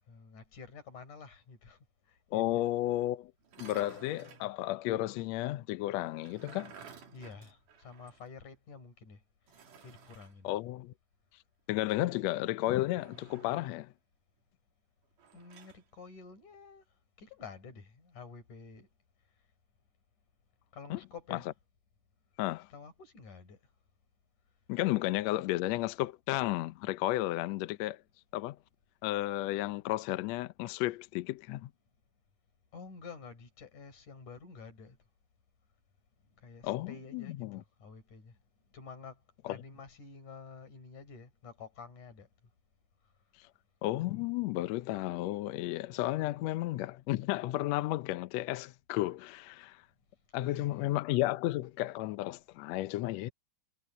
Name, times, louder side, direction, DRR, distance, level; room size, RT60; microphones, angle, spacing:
voice 1, 0.1-2.6 7.1-9.2 9.5-10.6 15.3-18.9 20.7-21.5 22.7-23.6 32.7-35.0 36.4-38.4 38.7-42.3 46.3-46.5 50.3-51.0, left 5 dB, 65° left, 5.6 m, -50 dB
voice 2, 2.3-3.3 3.6-6.7 10.4-10.9 11.7-13.9 20.9-21.0 21.3-21.4 22.4-22.7 24.7-28.0 28.3-28.6 29.0-31.7 36.6-37.6 39.4-39.6 43.8-49.8 50.3-53.3, left 16 dB, 80° left, 1.5 m, -33 dB
sound 1, 3.4-4.5 6.0-8.3 8.6-8.7 9.5-10.4 12.8-13.8 15.2-15.8, right 6 dB, 70° right, 4.2 m, -53 dB
omnidirectional pair, 3.9 m